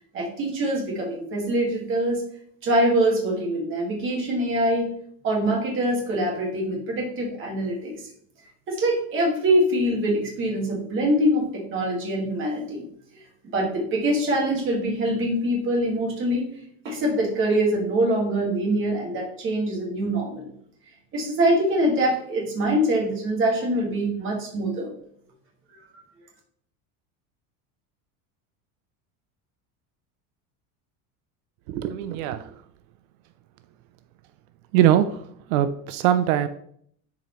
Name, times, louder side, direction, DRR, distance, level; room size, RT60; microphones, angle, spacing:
voice 1, 0.1-2.2 2.6-4.9 5.2-7.9 8.7-12.8 13.5-16.5 16.8-20.5 21.1-24.9, right 1 dB, 30° right, -1 dB, 1.9 m, -24 dB
voice 2, 31.7-32.5 34.7-35.2 35.5-36.5, right 11 dB, 85° right, 11 dB, 0.6 m, -21 dB
10.0 x 4.9 x 3.0 m, 0.65 s
cardioid pair, 170°, 41 cm